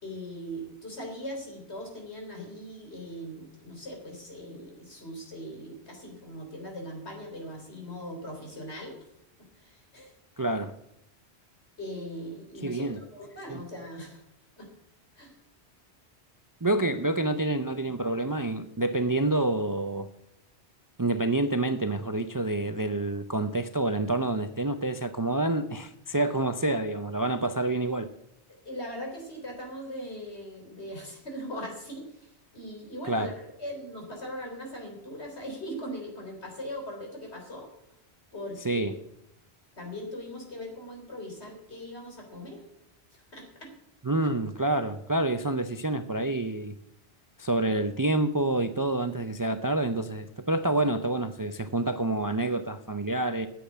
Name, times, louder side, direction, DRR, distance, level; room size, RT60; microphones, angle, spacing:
voice 1, 0.0-9.0 9.6-10.1 11.8-14.2 14.6-14.7 15.2-15.3 16.7-16.8 28.7-37.7 38.3-38.9 39.8-42.6 43.3-43.7, equal, 75° left, 1 dB, 3.8 m, -40 dB
voice 2, 10.4-10.7 12.6-13.0 13.5-13.6 16.6-20.1 21.0-28.1 33.1-33.3 38.6-38.9 44.0-46.8 47.4-53.5, right 2 dB, 25° right, 9 dB, 0.4 m, -28 dB
10.0 x 7.8 x 8.2 m, 0.83 s
omnidirectional pair, 1.1 m